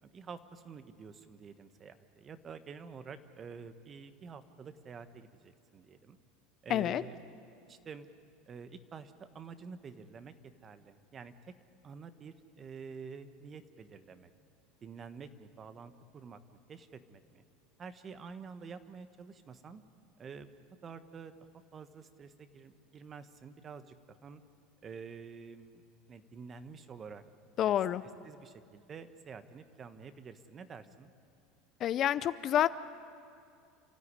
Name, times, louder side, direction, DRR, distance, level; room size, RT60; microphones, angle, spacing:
voice 1, 0.0-6.2 6.6-7.2 7.7-8.1 8.5-10.3 10.6-11.3 11.8-14.3 14.8-16.4 16.7-17.4 17.8-19.8 20.2-20.5 20.8-24.4 24.8-25.8 26.1-27.2 27.6-27.8 28.2-31.1, right 5 dB, 30° right, 11 dB, 1.3 m, -48 dB
voice 2, 6.7-7.0 27.6-28.0 31.8-32.7, left 11 dB, 40° left, 15 dB, 0.6 m, -28 dB
29.0 x 13.5 x 9.8 m, 2.4 s
supercardioid pair, 120°, 0 cm